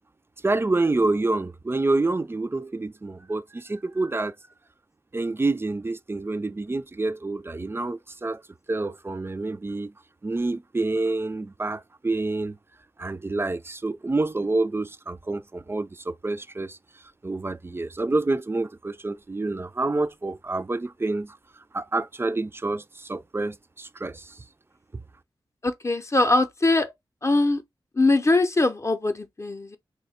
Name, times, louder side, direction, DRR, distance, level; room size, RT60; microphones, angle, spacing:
voice 1, 0.4-4.4 5.1-8.4 8.7-9.9 10.2-12.6 13.0-16.8 17.2-21.4 21.7-24.4, right 2 dB, 25° right, 0.4 m, -27 dB
voice 2, 25.6-26.9 27.2-27.6 27.9-29.8, left 2 dB, 30° left, 0.6 m, -22 dB
3.1 x 2.2 x 4.2 m
cardioid pair, 55°, 9 cm